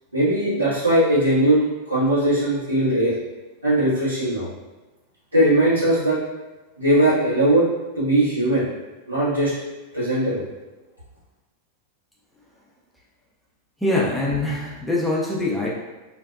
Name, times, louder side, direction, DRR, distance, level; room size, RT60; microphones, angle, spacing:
voice 1, 0.1-1.6 1.9-3.1 3.6-4.5 5.3-6.2 6.8-7.7 8.0-8.7 9.1-9.5 9.9-10.4, right 1 dB, 80° right, -10 dB, 1.1 m, -19 dB
voice 2, 13.8-15.7, left 2 dB, 5° left, -5 dB, 0.4 m, -23 dB
2.6 x 2.1 x 2.3 m, 1.1 s
figure-of-eight pair, 90°, 0 cm